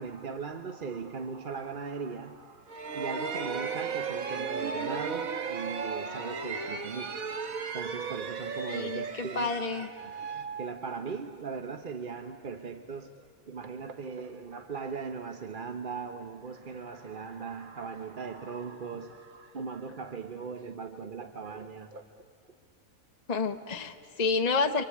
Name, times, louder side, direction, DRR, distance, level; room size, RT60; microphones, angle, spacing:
voice 1, 0.0-7.2 7.7-9.6 10.0-13.1 13.5-22.0, right 5 dB, 40° right, 1.0 m, -39 dB
sound 1, 2.7-11.4, right 5 dB, 80° right, 1.6 m, -35 dB
voice 2, 8.7-9.9 23.3-24.8, left 4 dB, 35° left, 0.9 m, -29 dB
27.5 x 25.0 x 8.5 m
omnidirectional pair, 1.5 m